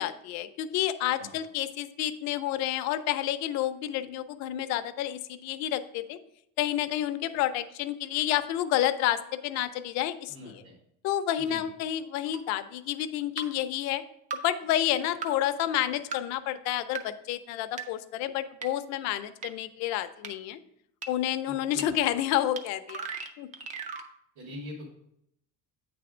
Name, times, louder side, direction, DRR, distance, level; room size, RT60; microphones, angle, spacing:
voice 1, 0.0-6.2 6.6-10.6 11.0-14.0 14.3-20.6 21.1-23.0 23.4-23.5, left 12 dB, 55° left, 11 dB, 0.5 m, -29 dB
voice 2, 10.3-10.7 11.5-11.6 21.5-21.9 24.3-24.9, left 1 dB, 60° right, -3 dB, 1.6 m, -43 dB
sound 1, 12.3-12.4 13.4-13.5 14.3-14.4 15.2-15.3 16.1-16.2 16.9-17.0 17.8-17.9 18.6-18.7 19.4-19.5 20.2-20.3 21.0-21.1 21.8-21.9 22.6-22.7 22.9-24.1, right 5 dB, 25° right, 0.3 m, -36 dB
8.5 x 3.4 x 4.9 m, 0.76 s
cardioid pair, 175°, 32 cm